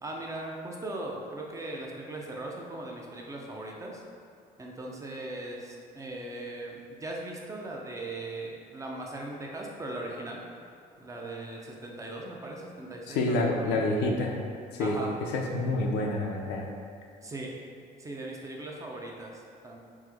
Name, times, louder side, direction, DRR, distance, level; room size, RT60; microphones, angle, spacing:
voice 1, 0.0-4.0 4.6-10.4 11.0-13.8 14.8-15.1 17.2-17.5 18.0-19.8, right 2 dB, 20° right, -1 dB, 0.4 m, -39 dB
voice 2, 13.1-14.3 14.7-15.0 15.3-16.7, left 2 dB, 85° left, 0 dB, 0.5 m, -28 dB
3.0 x 2.0 x 3.4 m, 2.4 s
cardioid pair, 110°, 17 cm